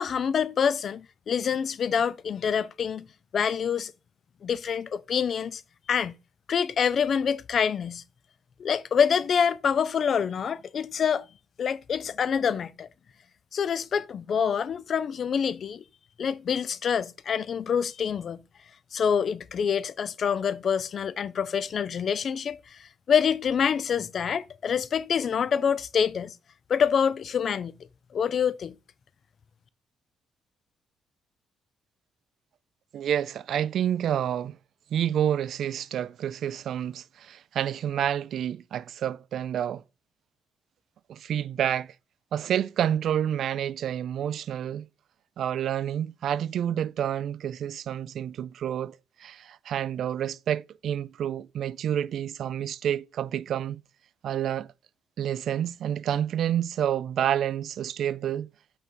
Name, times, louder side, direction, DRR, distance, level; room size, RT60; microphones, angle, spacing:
voice 1, 0.0-3.1 3.3-3.9 4.4-5.6 5.9-6.1 6.5-8.0 8.6-11.2 11.6-12.9 13.5-15.8 16.2-18.4 18.9-26.3 26.7-27.7 28.1-28.7, left 7 dB, 50° left, 0.4 m, -26 dB
voice 2, 32.9-34.6 34.9-39.8 41.1-41.9 42.3-44.9 45.4-53.8 54.2-54.7 55.2-58.5, right 10 dB, 65° right, 0.3 m, -29 dB
5.6 x 3.9 x 4.4 m
cardioid pair, 105°, 0 cm